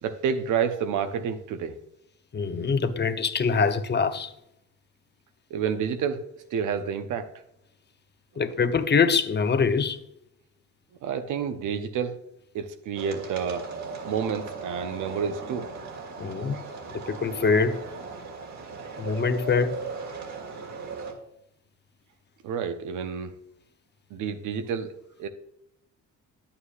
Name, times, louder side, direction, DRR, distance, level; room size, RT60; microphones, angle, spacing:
voice 1, 0.0-1.8 5.5-6.2 6.5-7.3 11.0-12.2 12.5-13.7 14.0-15.7 22.4-23.3 24.1-25.3, right 7 dB, 85° right, 0.9 m, -29 dB
voice 2, 2.3-4.3 8.4-10.0 16.2-16.6 16.9-17.8 19.0-19.8, left 5 dB, 35° left, 0.7 m, -24 dB
sound 1, 12.9-21.1, right 4 dB, 65° right, 1.9 m, -38 dB
9.5 x 8.7 x 2.4 m
cardioid pair, 90°, 30 cm